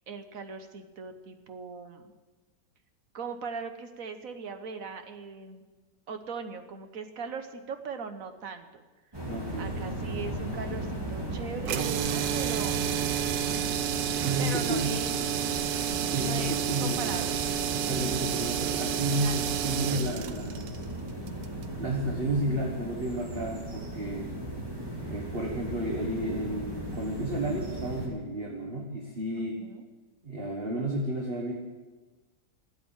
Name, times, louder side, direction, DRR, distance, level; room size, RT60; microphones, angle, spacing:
voice 1, 0.0-2.1 3.1-5.6 6.1-8.8 9.6-12.9 14.4-15.1 16.2-17.4 19.2-19.6 29.4-29.8, right 5 dB, 55° right, 8 dB, 1.4 m, -40 dB
sound 1, 9.1-28.1, right 1 dB, 15° right, 2.6 m, -37 dB
voice 2, 9.3-9.7 14.2-15.0 16.1-17.2 17.9-20.7 21.8-24.3 25.0-29.6 30.2-31.5, right 1 dB, 35° right, -1 dB, 1.6 m, -32 dB
sound 2, 11.6-21.7, right 10 dB, 90° right, 1.4 m, -30 dB
13.0 x 8.4 x 8.8 m, 1.3 s
omnidirectional pair, 1.9 m